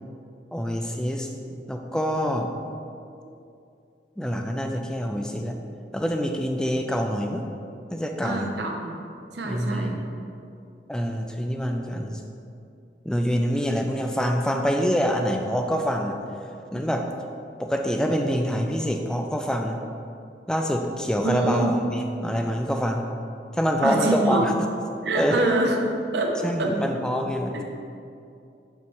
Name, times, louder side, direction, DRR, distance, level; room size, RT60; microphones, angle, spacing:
voice 1, 0.5-1.3 1.7-2.5 4.2-5.6 5.9-7.5 7.9-8.5 9.4-10.0 10.9-12.2 13.0-16.2 16.7-17.1 17.6-19.8 20.5-23.1 23.5-24.5 25.1-25.5 26.4-27.6, equal, 5° left, 3 dB, 0.3 m, -25 dB
voice 2, 8.2-8.9 9.3-10.0 21.2-21.7 23.8-24.5 25.0-25.8 26.1-26.7 27.5-27.6, right 2 dB, 75° right, 2 dB, 0.7 m, -25 dB
6.9 x 3.2 x 4.6 m, 2.6 s
head